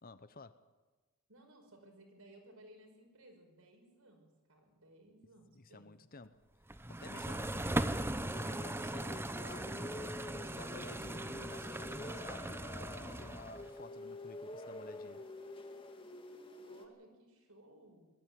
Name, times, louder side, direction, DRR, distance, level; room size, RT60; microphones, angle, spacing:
voice 1, 0.0-0.6 5.5-6.4 7.0-9.9 10.4-15.2, left 3 dB, 40° left, 13 dB, 0.9 m, -53 dB
voice 2, 1.3-5.9 13.6-14.0 16.6-18.1, right 1 dB, 75° right, 3 dB, 5.3 m, -60 dB
sound 1, 6.7-13.7, right 1 dB, 10° right, 0.7 m, -39 dB
sound 2, 8.3-16.9, left 2 dB, 25° left, 1.8 m, -48 dB
21.0 x 13.5 x 9.4 m, 1.2 s
head